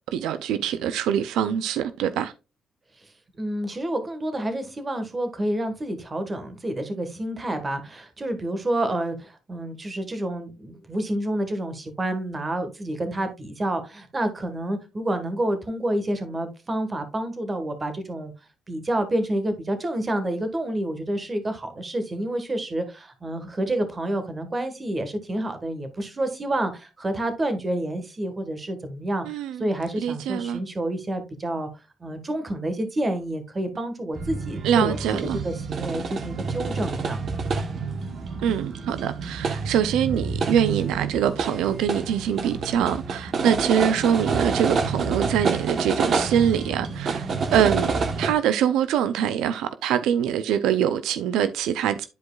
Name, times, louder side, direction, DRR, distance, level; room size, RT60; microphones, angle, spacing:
voice 1, 0.1-2.3 29.2-29.7 30.0-30.6 34.6-35.4 38.4-47.9 48.2-52.0, right 9 dB, 90° right, 0.5 m, -24 dB
voice 2, 3.4-18.3 18.7-31.7 32.0-35.2 35.4-37.3, right 1 dB, 25° right, 1.5 m, -29 dB
sound 1, 34.1-48.3, right 4 dB, 50° right, 1.1 m, -28 dB
10.5 x 4.7 x 2.4 m
cardioid pair, 90°, 0 cm